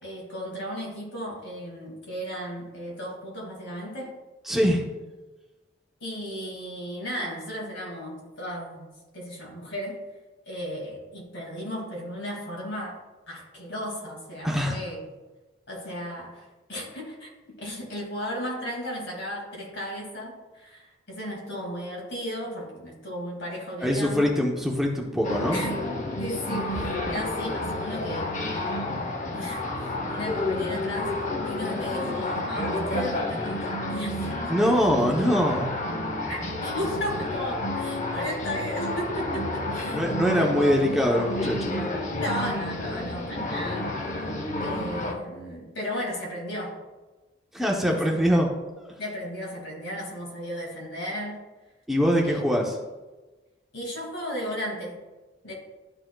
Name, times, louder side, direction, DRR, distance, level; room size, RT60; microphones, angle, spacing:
voice 1, 0.0-4.1 6.0-10.0 10.4-13.0 13.3-15.0 15.7-24.4 25.5-25.7 26.2-28.8 29.3-34.4 36.3-40.1 40.3-40.9 42.1-44.3 44.6-46.8 47.8-48.4 49.0-51.4 52.2-52.5 53.7-55.0 55.4-55.5, equal, 80° left, -1 dB, 2.2 m, -35 dB
voice 2, 4.5-4.8 14.4-14.8 23.8-25.6 34.5-35.7 39.9-41.8 47.5-48.5 48.8-48.9 51.9-52.8, equal, ahead, -1 dB, 0.7 m, -23 dB
sound 1, 25.2-45.1, left 1 dB, 40° left, 0.7 m, -30 dB
12.0 x 4.1 x 2.3 m, 1.2 s
head